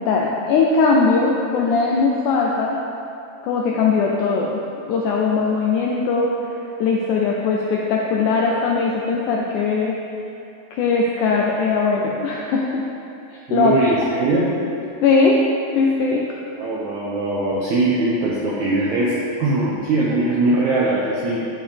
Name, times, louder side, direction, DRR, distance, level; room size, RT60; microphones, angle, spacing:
voice 1, 0.0-2.8 3.4-6.3 6.8-10.0 10.7-12.8 13.3-13.9 15.0-15.4 15.8-16.2, left 4 dB, 80° left, -2 dB, 1.8 m, -20 dB
voice 2, 13.5-14.5 16.6-19.1 19.4-21.4, right 2 dB, 80° right, -5 dB, 1.7 m, -21 dB
8.9 x 7.4 x 3.4 m, 2.6 s
omnidirectional pair, 4.2 m